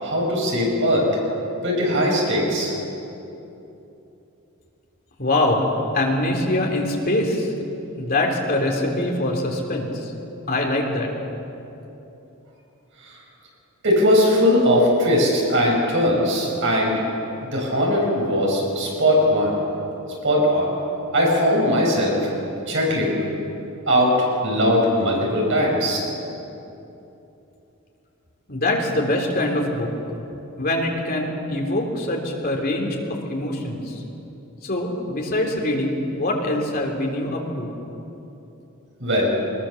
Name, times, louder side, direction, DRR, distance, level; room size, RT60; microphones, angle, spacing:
voice 1, 0.0-1.1 1.6-2.7 13.8-17.0 17.4-19.5 20.2-20.7 21.1-22.2 22.7-23.2 23.9-26.0 39.0-39.3, equal, 60° right, -3 dB, 7.4 m, -19 dB
voice 2, 5.2-7.5 8.0-10.1 10.5-11.1 28.5-29.9 30.6-33.0 33.2-34.0 34.6-37.7, left 1 dB, 45° left, 0 dB, 3.7 m, -23 dB
23.5 x 21.0 x 7.3 m, 2.9 s
head